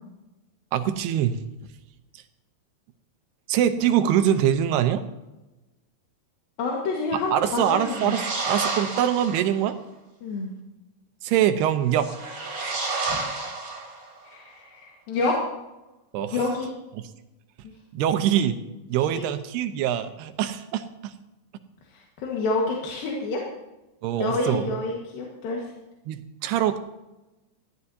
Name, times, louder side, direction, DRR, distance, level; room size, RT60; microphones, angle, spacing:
voice 1, 0.7-1.4 2.1-2.2 3.5-5.0 7.3-9.8 11.2-12.1 16.1-16.4 17.0-17.1 17.9-18.6 18.9-21.1 24.0-24.7 26.1-26.8, right 10 dB, 80° right, 9 dB, 2.7 m, -24 dB
voice 2, 6.6-8.2 10.2-10.5 13.1-13.5 14.2-15.4 16.3-16.7 19.1-19.2 21.9-23.4 24.2-25.6, left 3 dB, 65° left, -2 dB, 3.1 m, -28 dB
sound 1, 7.5-9.5 11.9-14.2, right 3 dB, 35° right, 3.7 m, -31 dB
20.5 x 14.5 x 2.8 m, 1.0 s
omnidirectional pair, 4.9 m